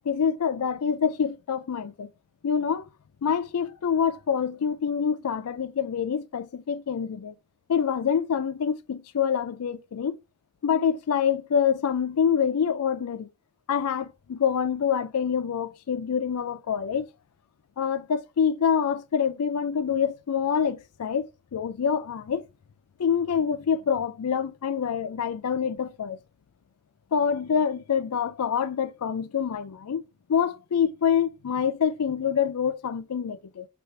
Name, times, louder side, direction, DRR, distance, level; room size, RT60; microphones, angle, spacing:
voice 1, 0.1-2.1 2.4-2.9 3.2-7.4 7.7-10.2 10.6-13.3 13.7-17.1 17.8-21.3 21.5-22.4 23.0-26.2 27.1-30.0 30.3-33.7, left 7 dB, 90° left, 0.4 m, -26 dB
6.7 x 2.5 x 3.2 m
head